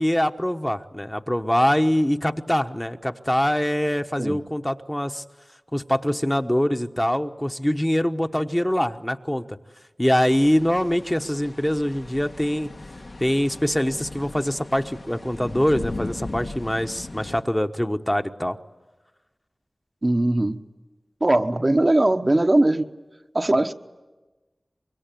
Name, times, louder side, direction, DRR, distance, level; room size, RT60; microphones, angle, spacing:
voice 1, 0.0-5.2 5.7-9.6 10.0-12.7 13.2-18.6, equal, 15° left, 1.1 m, -23 dB
sound 1, 10.2-17.4, left 2 dB, 65° left, 1.5 m, -38 dB
voice 2, 20.0-20.6 21.2-22.9 23.3-23.7, right 1 dB, 45° right, 1.1 m, -20 dB
25.0 x 23.0 x 9.2 m
wide cardioid pair, 40°, 0 cm